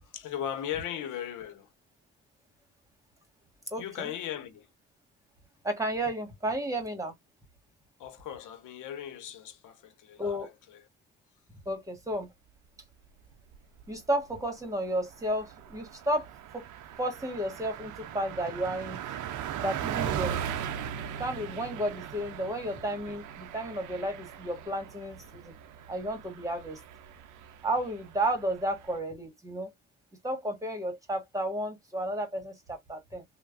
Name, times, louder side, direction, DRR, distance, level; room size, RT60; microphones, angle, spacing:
voice 1, 0.0-1.7 3.8-4.7 8.0-10.9, left 10 dB, 85° left, 0.9 m, -38 dB
voice 2, 3.7-4.1 5.6-7.1 10.2-10.5 11.6-12.3 13.9-16.7 17.0-19.0 19.6-20.4 21.2-25.5 25.9-26.8 27.6-29.7 30.2-33.2, right 1 dB, 10° right, 1.3 m, -32 dB
Car passing by, 13.3-13.9 14.3-14.4 14.7-29.0, right 9 dB, 80° right, 0.5 m, -39 dB
3.1 x 2.2 x 2.4 m
cardioid pair, 90°, 30 cm